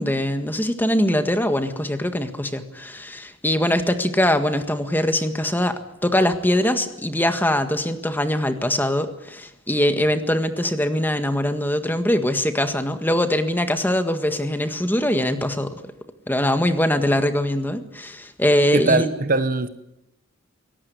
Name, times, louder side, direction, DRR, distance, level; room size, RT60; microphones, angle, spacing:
voice 1, 0.0-5.7 6.0-15.9 16.3-19.1, left 1 dB, 10° left, 8 dB, 1.7 m, -22 dB
voice 2, 18.7-19.7, right 3 dB, 45° right, 12 dB, 1.1 m, -20 dB
22.5 x 18.5 x 9.5 m, 0.84 s
head